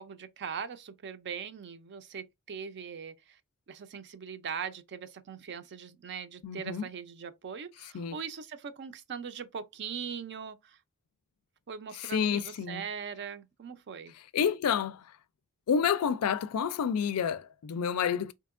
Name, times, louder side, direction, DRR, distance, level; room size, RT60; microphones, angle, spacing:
voice 1, 0.0-3.4 3.7-10.8 11.7-14.1, right 7 dB, 50° right, 0.5 m, -41 dB
voice 2, 6.4-6.9 7.9-8.2 12.0-12.8 14.3-15.0 15.7-18.3, left 7 dB, 75° left, 0.4 m, -29 dB
4.3 x 2.8 x 2.4 m
head